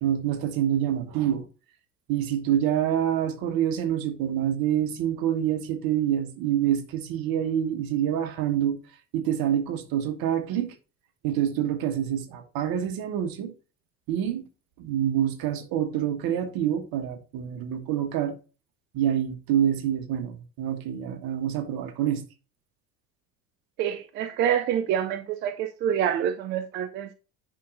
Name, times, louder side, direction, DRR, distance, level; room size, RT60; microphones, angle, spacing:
voice 1, 0.0-1.5 2.1-8.8 9.1-10.7 11.2-13.5 14.1-14.5 14.8-18.3 18.9-22.2, right 10 dB, 45° right, 1.4 m, -26 dB
voice 2, 23.8-27.2, right 9 dB, 25° right, 0.3 m, -27 dB
10.0 x 5.1 x 2.5 m
figure-of-eight pair, 65°, 50 cm